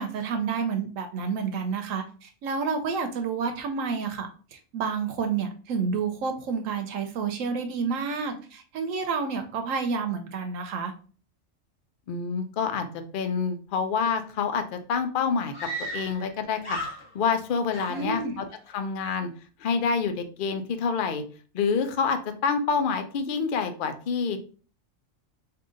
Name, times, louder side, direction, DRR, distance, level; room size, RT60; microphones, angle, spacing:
voice 1, 0.0-10.9 17.9-18.3, right 5 dB, 85° right, 5 dB, 1.0 m, -29 dB
voice 2, 12.1-12.9 13.1-16.8 17.1-18.5 18.7-19.3 19.6-21.2 21.5-24.4, left 5 dB, 55° left, 7 dB, 0.6 m, -27 dB
Screaming, 14.7-14.8 15.5-16.3 16.6-17.4 17.7-18.6, right 1 dB, 25° left, 1.1 m, -36 dB
3.8 x 2.8 x 3.7 m, 0.40 s
omnidirectional pair, 1.3 m